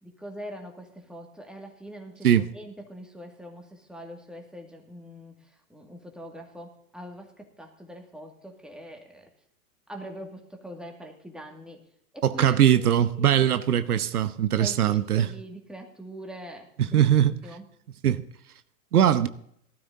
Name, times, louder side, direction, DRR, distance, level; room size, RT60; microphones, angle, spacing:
voice 1, 0.0-9.3 9.9-11.8 12.1-13.6 14.6-17.1 17.4-17.6, equal, ahead, 2.1 m, -43 dB
voice 2, 12.2-15.3 16.9-17.3 18.0-18.2 18.9-19.3, right 10 dB, 85° right, 0.8 m, -21 dB
18.5 x 12.5 x 2.7 m
hypercardioid pair, 110°, 44 cm